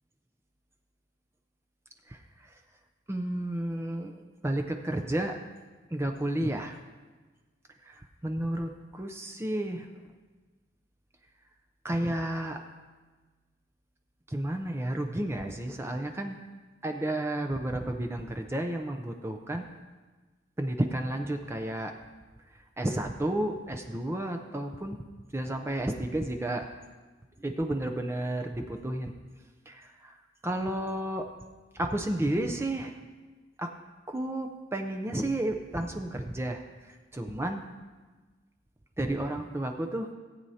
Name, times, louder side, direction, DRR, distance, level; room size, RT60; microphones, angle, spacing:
voice 1, 3.1-5.4 5.9-6.8 7.9-9.9 11.8-12.6 14.3-16.4 16.8-19.7 20.6-21.9 22.8-25.0 25.3-26.6 27.4-29.1 29.7-30.2 30.4-31.3 31.7-32.9 33.6-33.7 34.1-36.6 37.1-37.7 39.0-40.1, right 1 dB, 15° right, 4 dB, 0.5 m, -32 dB
17.5 x 8.6 x 2.8 m, 1.3 s
head